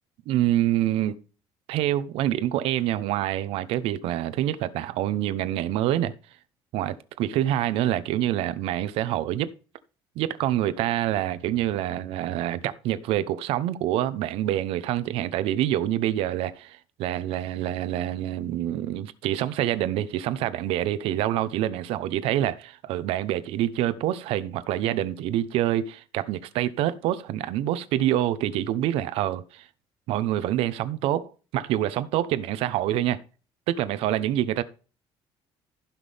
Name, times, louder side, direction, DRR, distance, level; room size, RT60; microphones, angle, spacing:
voice 1, 0.3-1.2 1.7-6.1 6.7-9.5 10.2-29.7 30.1-33.2 33.7-34.6, right 12 dB, 85° right, 0.9 m, -26 dB
15.5 x 5.9 x 3.5 m
cardioid pair, 150°, 10 cm